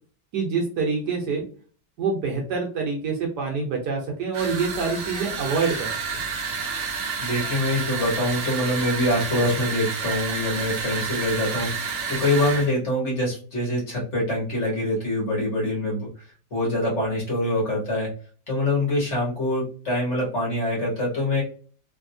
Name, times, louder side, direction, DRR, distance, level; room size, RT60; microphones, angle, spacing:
voice 1, 0.3-1.4 2.0-6.2, right 4 dB, 65° right, 1 dB, 1.2 m, -26 dB
sound 1, 4.3-12.7, right 5 dB, 85° right, 0.6 m, -30 dB
voice 2, 6.8-16.1 16.5-18.1 18.5-21.4, left 1 dB, 40° left, -4 dB, 1.4 m, -25 dB
3.3 x 2.7 x 2.6 m, 0.41 s
omnidirectional pair, 2.1 m